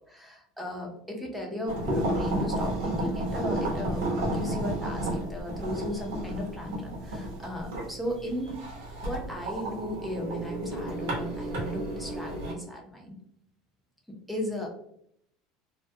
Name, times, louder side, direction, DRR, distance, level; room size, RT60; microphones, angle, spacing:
voice 1, 0.1-8.6 9.0-13.1 14.3-14.7, left 1 dB, ahead, 0 dB, 0.5 m, -36 dB
sound 1, 1.7-12.5, right 1 dB, 85° right, 0.9 m, -32 dB
2.3 x 2.1 x 2.6 m, 0.70 s
cardioid pair, 160°, 0 cm